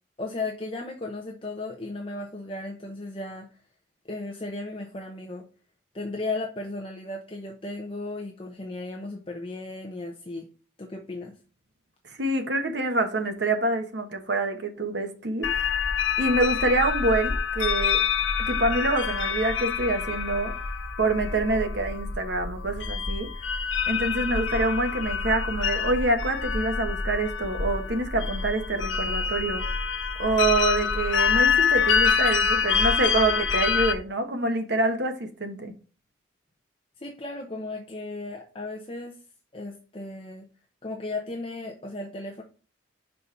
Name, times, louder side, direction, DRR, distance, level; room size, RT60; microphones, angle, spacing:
voice 1, 0.2-3.5 4.0-5.4 5.9-10.5 10.8-11.3 37.0-39.2 39.5-40.5 40.8-42.4, left 2 dB, 25° left, 0.7 m, -35 dB
voice 2, 12.2-15.8 16.2-18.0 18.4-20.5 21.0-23.3 23.9-29.8 30.2-35.7, right 2 dB, 60° right, 1.1 m, -26 dB
sound 1, 15.4-33.9, left 6 dB, 70° left, 0.7 m, -26 dB
5.5 x 4.1 x 4.5 m
head